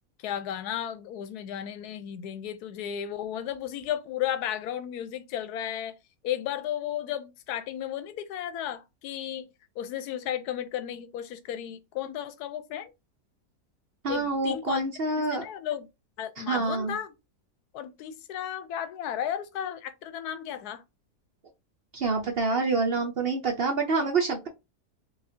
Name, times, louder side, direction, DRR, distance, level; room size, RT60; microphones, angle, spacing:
voice 1, 0.2-6.0 6.2-9.5 9.8-12.9 14.1-14.8 15.2-15.9 16.2-17.1 17.7-20.8, left 10 dB, 80° left, 1.1 m, -34 dB
voice 2, 14.0-15.4 16.4-17.0 21.9-24.5, right 3 dB, 65° right, 0.6 m, -27 dB
4.9 x 2.3 x 2.7 m
omnidirectional pair, 1.7 m